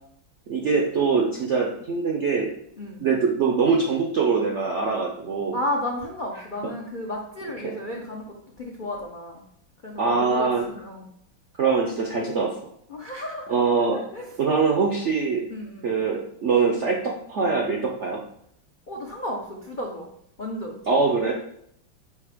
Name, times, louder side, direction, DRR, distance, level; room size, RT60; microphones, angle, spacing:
voice 1, 0.5-2.5 3.0-5.6 7.6-7.7 10.0-10.7 11.6-12.5 13.5-14.0 14.4-15.4 15.8-18.2 20.9-21.3, right 5 dB, 65° right, 0 dB, 0.6 m, -23 dB
voice 2, 5.5-9.4 9.8-11.1 12.9-13.6 13.9-14.4 15.5-15.9 18.9-20.1 20.4-20.8, left 1 dB, 70° left, -1 dB, 0.4 m, -33 dB
8.4 x 2.9 x 5.0 m, 0.72 s
omnidirectional pair, 2.2 m